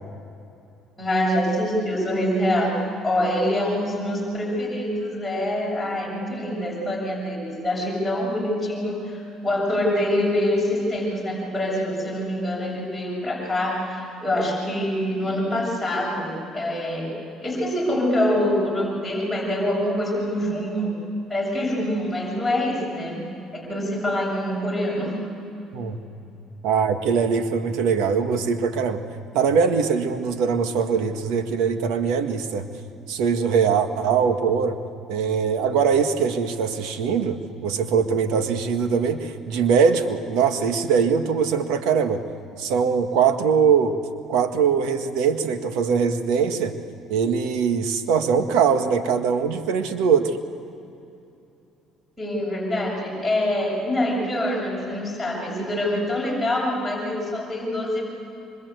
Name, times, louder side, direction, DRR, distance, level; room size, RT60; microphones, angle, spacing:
voice 1, 1.0-2.7 3.0-20.9 21.3-23.3 23.5-25.2 52.2-58.0, left 1 dB, ahead, -5 dB, 7.5 m, -25 dB
voice 2, 26.6-29.0 29.3-32.7 33.1-34.8 35.1-42.2 42.6-44.0 44.3-46.7 47.1-50.4, right 6 dB, 85° right, 7 dB, 1.7 m, -22 dB
25.5 x 25.0 x 8.2 m, 2.7 s
cardioid pair, 110°, 0 cm